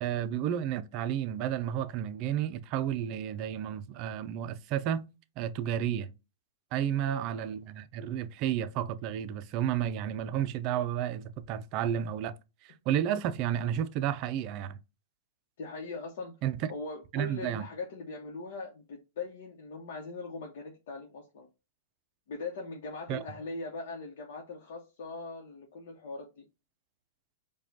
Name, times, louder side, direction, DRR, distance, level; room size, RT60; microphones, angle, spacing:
voice 1, 0.0-5.1 5.4-6.1 6.7-12.4 12.6-14.8 16.4-16.6 17.1-17.7 23.1-23.2, right 10 dB, 40° right, 0.4 m, -32 dB
voice 2, 7.0-7.5 15.6-16.4 16.7-21.5 22.3-26.4, left 3 dB, 65° left, 0.9 m, -40 dB
4.8 x 2.3 x 2.7 m
hypercardioid pair, 140°, 0 cm